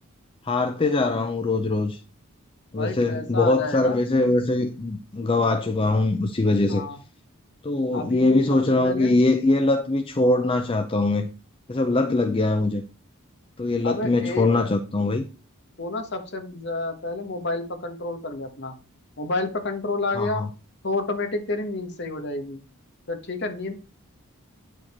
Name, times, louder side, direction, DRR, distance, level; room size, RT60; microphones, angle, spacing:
voice 1, 0.4-2.0 2.7-6.8 7.6-11.3 11.7-12.8 13.6-15.2 20.1-20.5, left 2 dB, 25° left, 0.5 m, -22 dB
voice 2, 2.7-4.0 6.7-7.0 7.9-9.1 13.8-14.7 15.8-18.8 19.2-20.4 20.8-22.6 23.1-23.7, left 2 dB, 50° left, 1.3 m, -30 dB
8.9 x 4.9 x 4.3 m
head